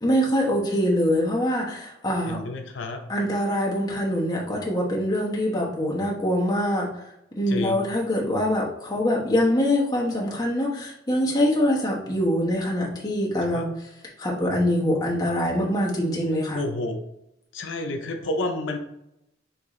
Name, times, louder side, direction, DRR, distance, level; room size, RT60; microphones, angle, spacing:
voice 1, 0.0-2.4 3.1-6.9 7.4-13.7 14.2-16.6, equal, 20° left, -3 dB, 0.9 m, -24 dB
voice 2, 2.3-3.0 7.5-7.8 13.5-13.7 16.5-17.0 17.5-18.8, left 2 dB, 85° left, 4 dB, 0.6 m, -30 dB
4.8 x 2.7 x 3.7 m, 0.81 s
head